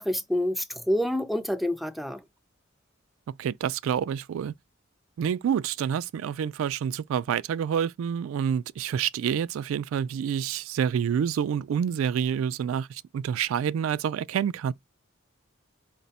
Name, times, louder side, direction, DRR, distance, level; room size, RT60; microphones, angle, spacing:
voice 1, 0.0-2.2, left 1 dB, ahead, 0.4 m, -27 dB
voice 2, 3.4-4.5 5.2-14.7, right 8 dB, 90° right, 0.3 m, -28 dB
4.8 x 2.2 x 3.9 m
head